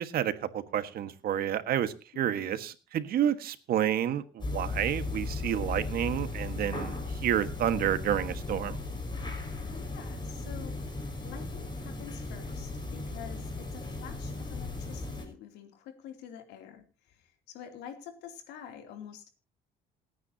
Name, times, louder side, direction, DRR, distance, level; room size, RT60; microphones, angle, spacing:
voice 1, 0.0-8.8, right 10 dB, 65° right, 11 dB, 1.5 m, -30 dB
voice 2, 2.1-2.6 9.7-19.3, left 9 dB, 90° left, 6 dB, 2.9 m, -48 dB
sound 1, 4.4-15.3, left 3 dB, 25° left, 5.5 m, -36 dB
28.0 x 9.6 x 2.8 m, 0.31 s
cardioid pair, 110°, 17 cm